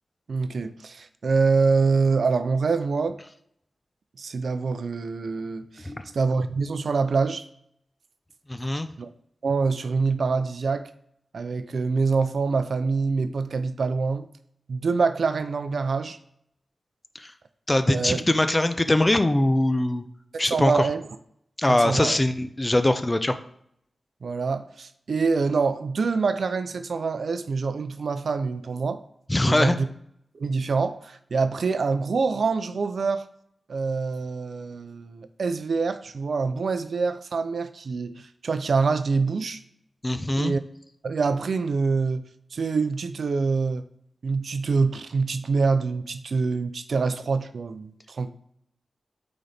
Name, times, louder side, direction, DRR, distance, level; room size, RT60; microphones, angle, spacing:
voice 1, 0.3-3.2 4.2-7.4 9.0-9.1 9.4-10.9 11.3-14.3 14.7-16.2 17.9-18.2 20.4-21.0 21.7-22.2 24.2-29.0 29.5-29.9 30.3-33.3 33.7-39.6 40.4-40.6 41.0-42.2 42.5-43.8 44.2-48.3, right 4 dB, 75° right, 0.5 m, -25 dB
voice 2, 8.5-8.9 17.1-17.3 17.7-20.0 20.4-20.9 21.6-23.4 29.3-29.7 40.0-40.5, left 1 dB, 25° left, 0.6 m, -22 dB
8.8 x 4.0 x 3.4 m
cardioid pair, 60°, 0 cm